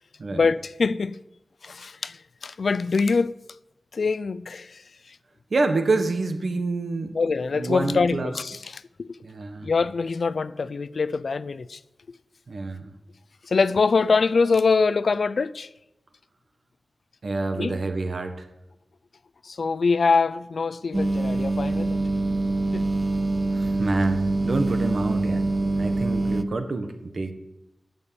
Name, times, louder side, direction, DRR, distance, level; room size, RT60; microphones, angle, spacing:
voice 1, 0.3-1.2 1.6-3.4 3.9-5.2 7.1-9.2 9.6-11.8 13.4-15.7 17.6-17.8 19.4-22.0 22.7-22.9, left 4 dB, 70° left, 0.5 m, -24 dB
voice 2, 5.5-7.2 7.5-8.3 9.2-9.7 12.5-12.9 17.2-18.5 23.5-25.5 25.8-27.3, right 3 dB, 60° right, 1.5 m, -27 dB
sound 1, 20.9-26.4, right 2 dB, 25° right, 0.6 m, -25 dB
13.0 x 6.9 x 8.6 m
wide cardioid pair, 105°, 0 cm